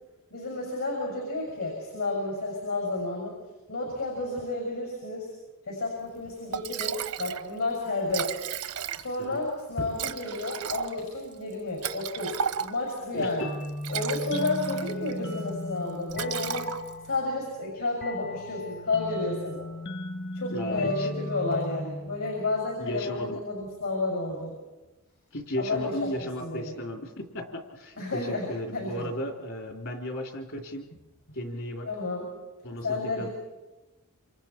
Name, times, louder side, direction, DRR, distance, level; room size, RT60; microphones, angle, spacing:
voice 1, 0.3-3.4 3.7-5.3 5.7-8.3 8.9-13.5 13.9-16.7 17.0-19.7 20.3-24.6 25.6-26.1 26.4-26.8 28.0-29.1 31.9-32.3 32.8-33.3, left 2 dB, 80° left, -1 dB, 6.6 m, -31 dB
Liquid, 6.2-6.3 6.5-7.5 7.7-7.8 8.0-9.3 10.0-13.0 13.6-15.2 15.5-15.7 16.1-17.2, right 8 dB, 85° right, 0.9 m, -34 dB
sound 1, 13.4-22.8, left 1 dB, 50° left, 1.3 m, -37 dB
voice 2, 20.5-21.1 22.8-23.4 25.3-30.8 31.3-31.9 32.6-33.3, left 1 dB, 65° left, 2 dB, 3.3 m, -35 dB
28.0 x 27.0 x 4.5 m, 1.1 s
head